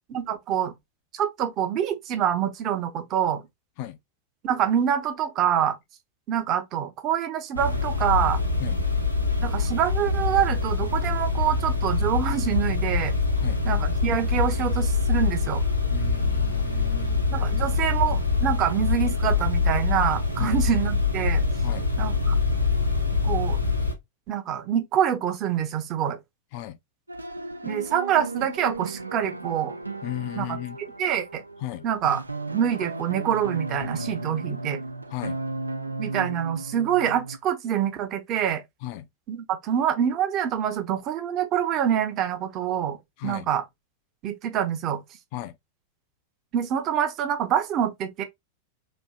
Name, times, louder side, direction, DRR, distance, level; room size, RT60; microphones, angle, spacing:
voice 1, 0.1-0.7 1.1-3.4 4.4-5.8 6.3-8.4 9.4-13.1 13.6-15.6 17.3-21.4 22.0-22.4 23.2-23.6 24.3-26.2 27.6-29.8 30.4-30.6 31.0-31.4 31.8-32.2 32.5-34.8 36.0-38.6 39.3-43.0 43.2-43.6 44.2-45.0 46.5-48.2, right 9 dB, 35° right, 0.7 m, -26 dB
sound 1, 7.6-23.9, left 4 dB, 90° left, 0.8 m, -24 dB
voice 2, 15.9-17.2 20.4-20.6 21.6-21.9 26.5-26.8 30.0-30.8 31.6-31.8 35.1-35.4 38.8-39.1 43.2-43.5 45.3-45.6, left 14 dB, 45° left, 0.4 m, -35 dB
sound 2, 27.1-37.4, right 2 dB, 80° right, 0.3 m, -35 dB
4.2 x 2.6 x 2.3 m
figure-of-eight pair, 90°, 0 cm